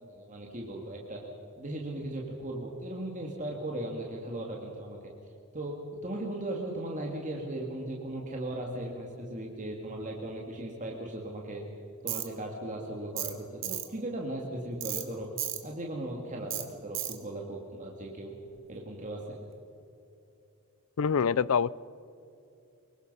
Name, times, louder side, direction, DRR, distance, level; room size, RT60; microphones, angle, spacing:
voice 1, 0.0-1.2 1.6-5.1 5.5-11.6 12.0-15.3 15.6-18.3 18.7-19.4, right 1 dB, 35° right, 0 dB, 2.3 m, -37 dB
Tools, 12.1-12.3 13.2-13.4 13.6-13.9 14.8-15.0 15.4-15.6 16.5-16.6 16.9-17.2, right 13 dB, 60° right, 2.0 m, -33 dB
voice 2, 21.0-21.7, left 6 dB, 70° left, 22 dB, 0.5 m, -25 dB
25.0 x 22.5 x 5.6 m, 2.8 s
head